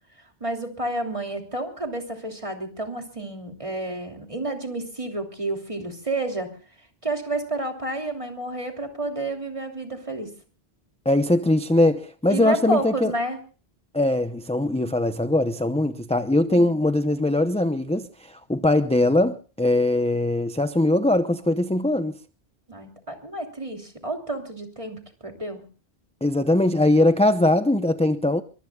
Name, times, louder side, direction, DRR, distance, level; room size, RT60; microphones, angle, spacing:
voice 1, 0.4-6.6 7.0-10.3 12.3-13.4 16.5-16.7 22.7-25.6, right 2 dB, 30° right, 3.1 m, -30 dB
voice 2, 11.1-13.1 13.9-22.2 26.2-28.4, left 1 dB, 5° left, 0.6 m, -21 dB
23.5 x 23.0 x 2.3 m
omnidirectional pair, 1.1 m